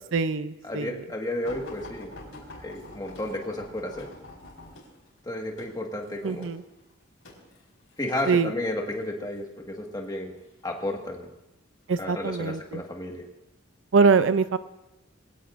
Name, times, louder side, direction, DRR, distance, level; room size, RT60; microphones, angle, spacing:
voice 1, 0.1-1.0 6.2-6.6 8.3-8.5 11.9-12.8 13.9-14.6, right 5 dB, 65° right, 13 dB, 0.5 m, -23 dB
voice 2, 0.6-2.1 2.6-4.1 5.2-6.5 8.0-10.3 10.6-11.3 12.0-13.3, left 1 dB, 20° left, 1 dB, 1.6 m, -32 dB
sound 1, 1.4-8.3 9.0-9.4 10.4-11.0 11.8-12.0 12.3-12.4, left 1 dB, 65° left, 4.8 m, -46 dB
23.0 x 16.5 x 2.6 m, 0.96 s
head